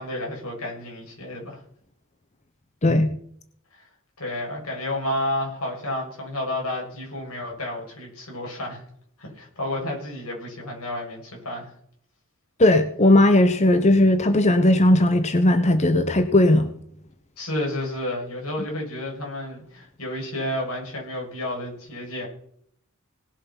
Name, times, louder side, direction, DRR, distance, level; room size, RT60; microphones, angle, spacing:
voice 1, 0.0-1.6 3.7-3.9 4.2-8.8 9.2-11.7 17.4-22.3, left 1 dB, 90° left, -1 dB, 7.0 m, -31 dB
voice 2, 2.8-3.1 12.6-16.7, left 1 dB, 30° left, 9 dB, 0.9 m, -17 dB
19.0 x 7.4 x 5.7 m, 0.65 s
head